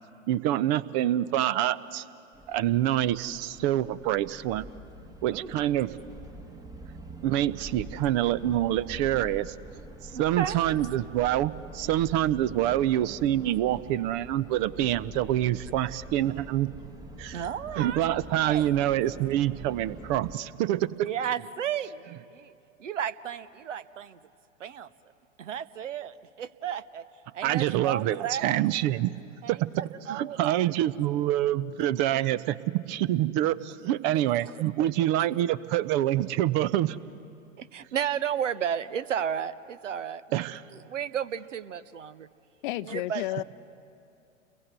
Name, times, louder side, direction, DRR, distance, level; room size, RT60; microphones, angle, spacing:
voice 1, 0.3-2.0 2.5-4.6 5.2-5.9 7.2-9.5 10.0-16.7 17.2-17.4 17.8-20.9 27.4-29.1 29.5-29.7 30.1-32.6 32.8-37.0 40.3-40.6, right 13 dB, 35° right, 19 dB, 0.7 m, -26 dB
sound 1, 2.3-20.4, right 1 dB, 10° right, 1.3 m, -45 dB
voice 2, 10.1-10.7 17.3-18.0 18.4-18.6 21.0-22.5 22.8-24.2 24.6-24.9 25.4-27.0 27.3-28.6 29.4-30.7 34.8-34.9 37.6-40.5 40.9-42.3 42.8-43.4, right 9 dB, 70° right, 17 dB, 0.9 m, -33 dB
voice 3, 42.6-43.4, left 17 dB, 40° left, 15 dB, 0.6 m, -31 dB
30.0 x 22.0 x 8.1 m, 2.6 s
figure-of-eight pair, 95°, 39 cm